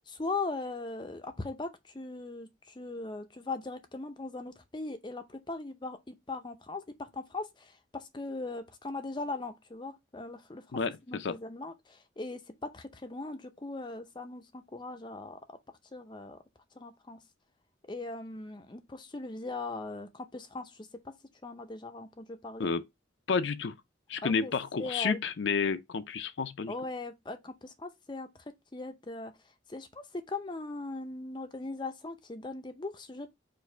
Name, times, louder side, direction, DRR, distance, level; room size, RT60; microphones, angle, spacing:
voice 1, 0.0-10.8 11.1-15.4 15.9-16.4 16.8-17.2 17.8-20.9 21.4-22.7 24.2-24.5 24.8-25.2 26.7-28.3 28.7-29.3 29.7-33.3, left 3 dB, 25° left, 0.5 m, -39 dB
voice 2, 10.7-11.4 22.6-22.8 23.3-23.7 24.1-26.7, left 5 dB, 75° left, 0.5 m, -30 dB
4.6 x 2.6 x 4.3 m
head